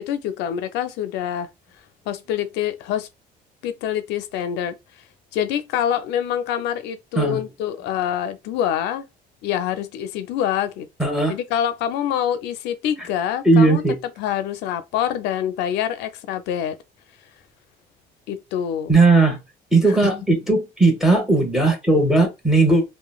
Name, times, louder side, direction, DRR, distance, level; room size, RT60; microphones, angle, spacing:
voice 1, 0.0-1.5 2.1-3.1 3.6-4.7 5.3-9.1 9.4-13.8 14.2-16.8 18.3-18.9 19.9-20.1, left 10 dB, 85° left, 0.4 m, -26 dB
voice 2, 11.0-11.3 13.4-14.0 18.9-19.4 19.7-22.8, right 2 dB, ahead, 1.1 m, -17 dB
3.0 x 2.1 x 2.3 m
cardioid pair, 110°, 17 cm